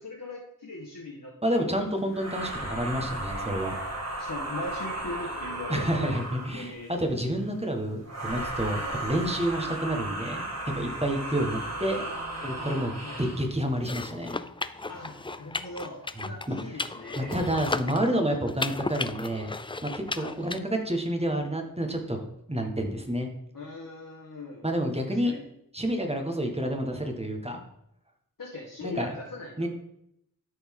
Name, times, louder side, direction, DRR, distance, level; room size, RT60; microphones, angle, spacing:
voice 1, 0.0-1.7 2.0-2.1 4.2-6.9 8.8-9.0 9.5-9.7 11.1-12.7 13.0-13.2 14.9-17.4 18.6-18.7 20.1-20.4 23.5-24.7 25.1-25.4 28.4-29.7, left 2 dB, 60° left, -4 dB, 1.7 m, -40 dB
voice 2, 1.4-3.7 5.7-10.5 10.7-12.0 12.4-14.4 16.5-16.6 17.2-19.5 19.8-23.3 24.6-25.3 25.7-27.6 28.8-29.1 29.6-29.7, right 1 dB, 15° right, 4 dB, 1.5 m, -29 dB
sound 1, 2.1-6.7 8.0-13.5, right 2 dB, 45° right, 2.1 m, -35 dB
sound 2, 13.8-20.6, left 3 dB, 15° left, 0.3 m, -35 dB
13.0 x 4.3 x 3.7 m, 0.76 s
wide cardioid pair, 60°, 36 cm